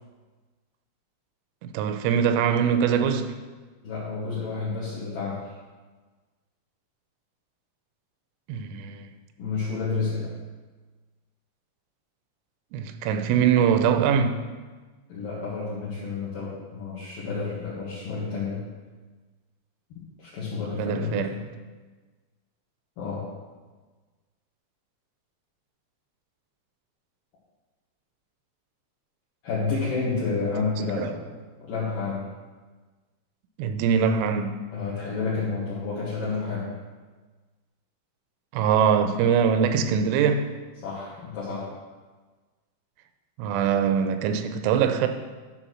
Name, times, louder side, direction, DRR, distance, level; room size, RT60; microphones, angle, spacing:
voice 1, 1.6-3.4 8.5-9.1 12.7-14.4 20.7-21.4 31.0-31.1 33.6-34.6 38.5-40.5 43.4-45.1, right 7 dB, 90° right, 3.1 m, -23 dB
voice 2, 3.8-5.5 9.4-10.3 15.1-18.6 19.9-21.4 23.0-23.3 29.4-31.2 31.6-32.3 34.7-36.7 40.8-41.7, left 4 dB, 60° left, 2.8 m, -30 dB
11.0 x 3.7 x 6.2 m
omnidirectional pair, 5.3 m